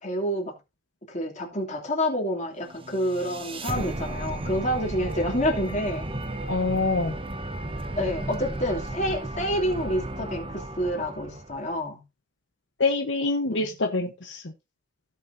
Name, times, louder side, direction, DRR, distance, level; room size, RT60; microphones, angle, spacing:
voice 1, 0.0-0.5 1.1-6.1 8.0-12.0 13.5-13.8, equal, 40° left, 3.0 m, -28 dB
sound 1, 2.7-11.8, right 1 dB, 30° right, 1.1 m, -34 dB
voice 2, 6.5-7.2 12.8-14.4, left 3 dB, 70° left, 1.1 m, -25 dB
16.5 x 5.8 x 2.7 m
head